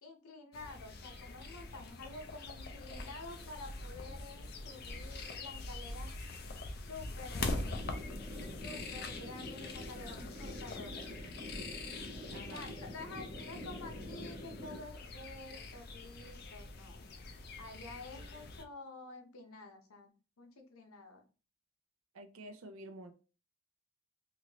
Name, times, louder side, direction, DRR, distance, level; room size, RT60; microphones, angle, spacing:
voice 1, 0.0-6.1 6.7-7.5 8.6-11.2 12.5-17.1 17.6-21.2, left 3 dB, 85° left, 4 dB, 0.7 m, -50 dB
sound 1, 0.5-18.6, left 2 dB, 45° left, 0.4 m, -44 dB
sound 2, 7.4-14.8, left 1 dB, 5° right, 1.1 m, -47 dB
voice 2, 12.3-12.7 22.1-23.1, right 1 dB, 80° right, 7 dB, 0.5 m, -49 dB
3.1 x 2.6 x 2.9 m, 0.34 s
head